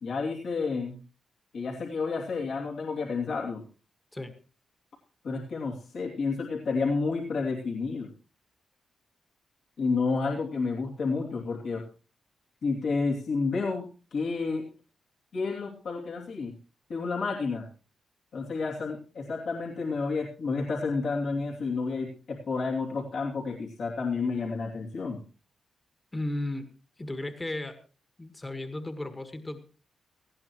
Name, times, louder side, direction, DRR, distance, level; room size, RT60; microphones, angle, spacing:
voice 1, 0.0-1.0 1.5-3.6 5.2-8.1 9.8-11.8 12.6-13.8 14.1-14.7 15.3-16.5 16.9-17.6 18.3-25.2, left 4 dB, 70° left, -2 dB, 2.8 m, -30 dB
voice 2, 26.1-26.7 27.0-27.8 28.2-29.6, left 1 dB, 20° left, 9 dB, 1.6 m, -35 dB
18.0 x 15.0 x 3.1 m, 0.36 s
cardioid pair, 75°, 0 cm